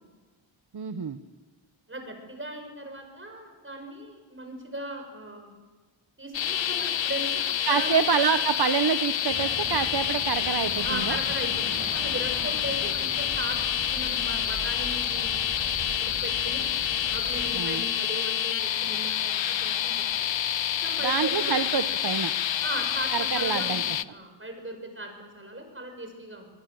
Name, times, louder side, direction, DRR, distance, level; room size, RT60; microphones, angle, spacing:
voice 1, 0.7-1.2 7.7-11.2 17.5-17.8 21.0-22.3 23.1-24.0, right 7 dB, 55° right, 10 dB, 1.1 m, -27 dB
voice 2, 1.9-5.5 6.2-8.1 10.8-13.6 13.9-15.7 16.0-16.7 17.1-20.3 20.8-21.5 22.6-26.5, right 1 dB, 25° right, 4 dB, 6.0 m, -38 dB
sound 1, 6.3-24.0, left 10 dB, 70° left, 0.7 m, -28 dB
sound 2, 9.3-17.5, right 2 dB, 75° right, 6.9 m, -40 dB
24.5 x 21.0 x 7.9 m, 1.3 s
wide cardioid pair, 90°, 48 cm